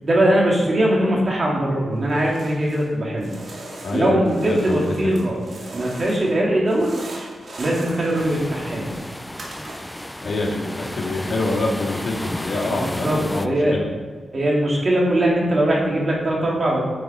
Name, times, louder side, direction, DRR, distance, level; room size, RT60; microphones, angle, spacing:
voice 1, 0.0-3.3 3.9-5.4 5.7-6.9 7.6-8.9 12.6-13.8 14.3-16.8, right 1 dB, 45° right, -3 dB, 3.2 m, -21 dB
sound 1, 2.0-2.9 3.2-6.4 6.6-10.0, right 2 dB, 65° right, 2.5 m, -40 dB
voice 2, 3.8-5.2 10.2-13.9, left 2 dB, 65° left, -3 dB, 2.6 m, -26 dB
sound 2, 8.1-13.5, left 1 dB, 10° left, 0.5 m, -33 dB
10.5 x 6.7 x 4.6 m, 1.5 s
cardioid pair, 70°, 0 cm